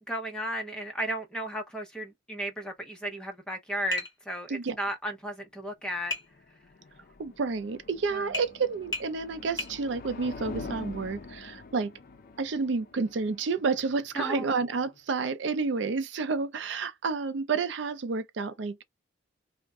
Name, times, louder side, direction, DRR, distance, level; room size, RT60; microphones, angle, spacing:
voice 1, 0.1-6.1 8.1-8.3 14.1-14.5, right 1 dB, 5° left, 0.7 m, -34 dB
Tap, 3.9-4.2 6.1-6.3 8.3-8.5 8.9-9.1 9.6-9.8, left 3 dB, 20° left, 1.2 m, -33 dB
sound 1, 6.0-15.0, left 3 dB, 45° left, 0.4 m, -45 dB
voice 2, 7.2-11.9 12.4-18.8, right 4 dB, 70° right, 0.4 m, -30 dB
2.4 x 2.1 x 3.5 m
head